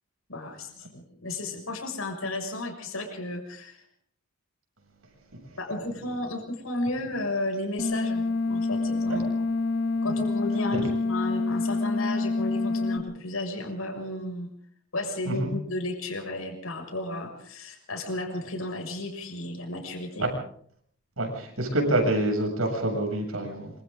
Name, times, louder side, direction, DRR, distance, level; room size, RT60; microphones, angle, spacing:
voice 1, 0.3-3.8 5.6-9.5 10.0-14.5 14.9-20.3, left 2 dB, 85° left, 2 dB, 6.6 m, -33 dB
sound 1, 7.8-13.0, left 3 dB, 50° left, 3.1 m, -27 dB
voice 2, 21.2-23.7, right 1 dB, 90° right, 2 dB, 7.7 m, -27 dB
27.0 x 26.0 x 3.9 m, 0.63 s
head